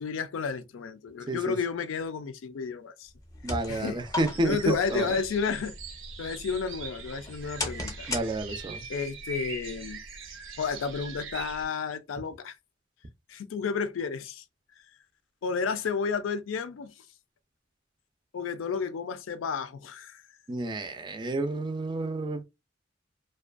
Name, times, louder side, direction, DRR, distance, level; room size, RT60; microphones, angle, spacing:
voice 1, 0.0-3.1 3.7-4.0 4.4-5.7 6.2-8.1 8.9-10.0 10.6-12.6 13.3-14.4 15.4-17.1 18.3-20.2, left 5 dB, 85° left, 0.4 m, -31 dB
sound 1, 3.1-8.8, left 2 dB, 20° left, 0.6 m, -39 dB
voice 2, 3.4-5.0 8.1-8.8 20.5-22.4, right 2 dB, 25° right, 0.4 m, -30 dB
sound 2, 4.2-11.7, right 4 dB, 75° right, 0.7 m, -42 dB
2.4 x 2.2 x 2.4 m
head